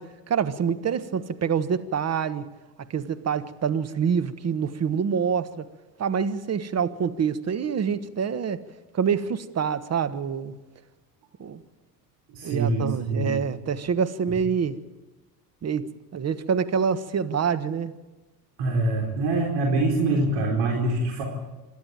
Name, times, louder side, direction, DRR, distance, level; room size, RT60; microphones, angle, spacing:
voice 1, 0.0-2.5 2.9-5.7 6.0-8.6 8.9-10.5 11.4-11.6 12.4-14.8 15.6-15.9 16.1-17.9, right 6 dB, 30° right, 1.4 m, -26 dB
voice 2, 12.3-13.3 18.6-21.2, right 2 dB, 60° right, 4.4 m, -24 dB
27.0 x 12.0 x 9.0 m
hypercardioid pair, 75°, 49 cm